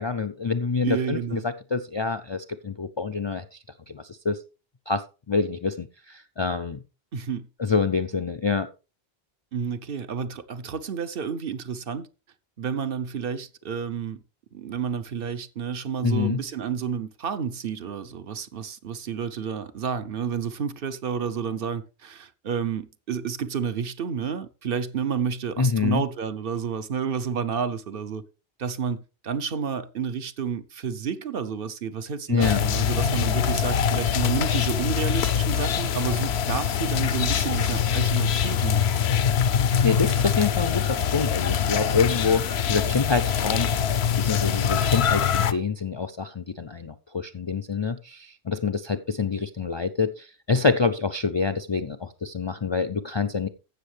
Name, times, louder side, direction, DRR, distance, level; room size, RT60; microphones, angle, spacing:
voice 1, 0.0-3.6 3.9-4.4 4.9-6.8 7.6-8.7 16.0-16.4 25.6-26.0 32.3-32.6 39.8-53.5, left 5 dB, 45° left, 0.3 m, -26 dB
voice 2, 0.8-1.5 7.1-7.5 9.5-12.1 12.6-14.2 14.5-28.2 28.6-38.8, right 6 dB, 65° right, 0.9 m, -30 dB
sound 1, 32.4-45.5, left 8 dB, 80° left, 0.9 m, -24 dB
15.0 x 6.3 x 3.3 m
omnidirectional pair, 1.1 m